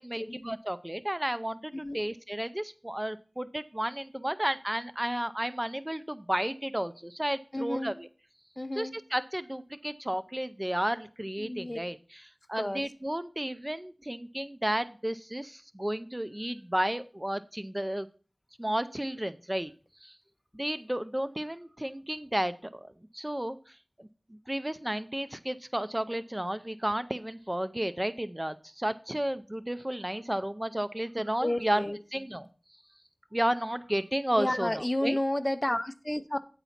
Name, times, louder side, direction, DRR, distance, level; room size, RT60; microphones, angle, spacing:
voice 1, 0.0-8.1 8.8-18.1 18.6-19.7 20.0-20.2 20.5-24.1 24.5-31.8 32.1-32.5 33.3-35.2, right 1 dB, 20° right, 0.4 m, -32 dB
voice 2, 7.5-8.0 8.6-8.9 11.4-11.8 12.5-12.8 31.4-32.0 34.4-36.4, left 1 dB, 25° left, 0.6 m, -31 dB
9.1 x 4.0 x 5.7 m
wide cardioid pair, 50°, 0 cm